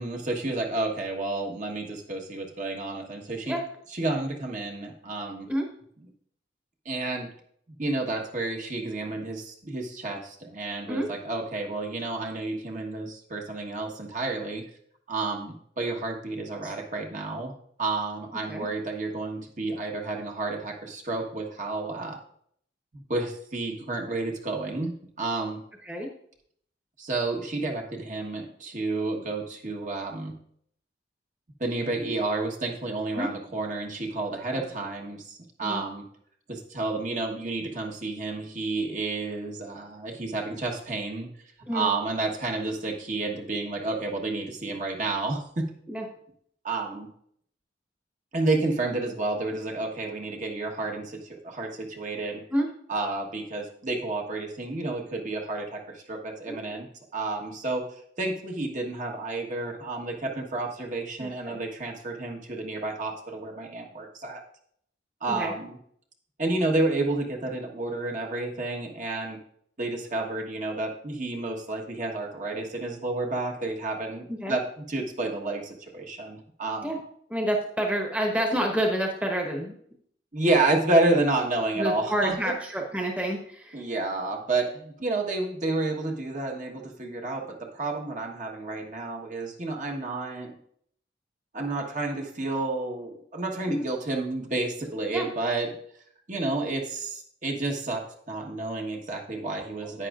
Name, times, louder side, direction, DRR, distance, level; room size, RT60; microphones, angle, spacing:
voice 1, 0.0-3.6 3.9-5.5 6.8-7.3 7.8-14.6 15.1-17.5 17.8-22.2 22.9-25.6 27.0-30.4 31.6-36.0 36.5-41.3 41.7-45.7 46.6-47.1 48.3-52.4 52.9-56.9 57.1-57.9 58.2-64.4 65.2-65.8 66.4-69.4 69.8-77.0 80.3-82.5 83.7-90.6 91.5-95.7 96.3-98.0 98.3-100.1, right 2 dB, 45° right, 1 dB, 1.3 m, -30 dB
voice 2, 61.2-61.6 65.3-65.5 74.3-74.6 76.8-77.0 77.3-79.7 81.1-81.2 81.8-83.9 93.7-93.9 95.1-95.3, right 1 dB, 10° right, 1 dB, 1.1 m, -29 dB
10.5 x 9.1 x 2.5 m, 0.65 s
head